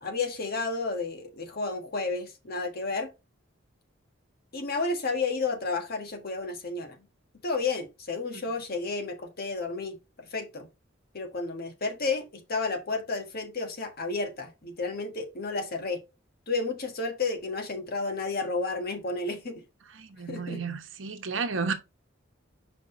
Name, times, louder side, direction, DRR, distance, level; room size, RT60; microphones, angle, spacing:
voice 1, 0.0-3.1 4.5-7.0 7.4-10.7 11.1-16.0 16.5-19.6 20.3-20.6, left 3 dB, 50° left, 1.5 m, -31 dB
voice 2, 20.0-21.7, right 5 dB, 75° right, 1.0 m, -32 dB
5.8 x 5.2 x 3.8 m
head